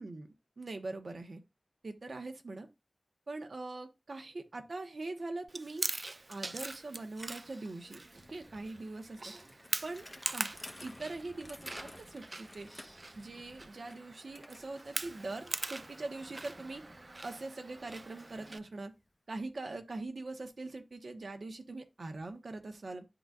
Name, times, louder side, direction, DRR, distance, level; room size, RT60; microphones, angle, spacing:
voice 1, 0.0-1.4 1.8-2.7 3.3-5.9 6.3-9.2 9.8-12.7 13.1-16.8 17.2-18.9 19.3-23.1, right 2 dB, 75° right, 1.1 m, -42 dB
Chewing mastication, 5.5-18.6, right 2 dB, 45° right, 0.3 m, -42 dB
Bicycle, 6.2-19.1, left 1 dB, 20° left, 1.1 m, -55 dB
11.5 x 3.9 x 2.4 m
wide cardioid pair, 60°, 0 cm